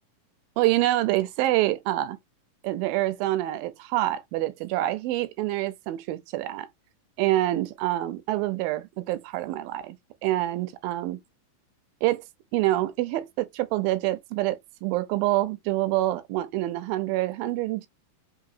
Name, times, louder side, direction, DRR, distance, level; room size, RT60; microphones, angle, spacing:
voice 1, 0.6-2.2 2.6-6.7 7.2-10.0 10.2-11.2 12.0-12.3 12.5-17.9, right 16 dB, 90° right, 2.3 m, -26 dB
5.3 x 2.8 x 2.5 m
omnidirectional pair, 4.0 m